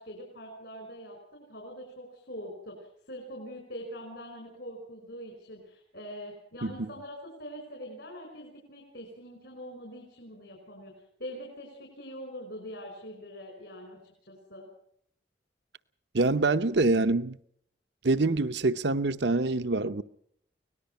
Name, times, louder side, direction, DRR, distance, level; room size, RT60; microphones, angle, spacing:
voice 1, 0.0-10.9 11.2-14.7, equal, 65° left, 5.7 m, -43 dB
voice 2, 16.1-17.4 18.0-20.0, right 3 dB, 70° right, 0.9 m, -25 dB
24.5 x 18.5 x 5.6 m
head